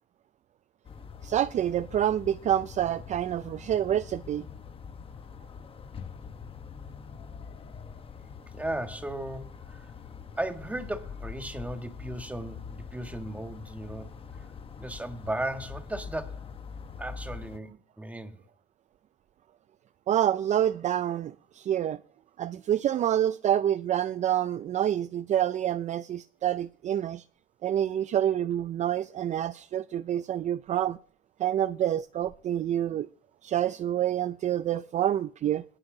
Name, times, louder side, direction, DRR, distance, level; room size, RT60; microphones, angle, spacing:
sound 1, 0.9-17.6, left 6 dB, 35° left, 1.0 m, -44 dB
voice 1, 1.2-4.4 20.1-22.0 22.4-27.2 27.6-31.0 31.4-33.1 33.4-35.6, right 11 dB, 45° right, 0.4 m, -27 dB
voice 2, 8.5-9.9 10.4-14.1 14.8-16.4 17.0-18.4, right 1 dB, 10° right, 1.6 m, -36 dB
19.0 x 6.3 x 3.8 m
cardioid pair, 110°, 17 cm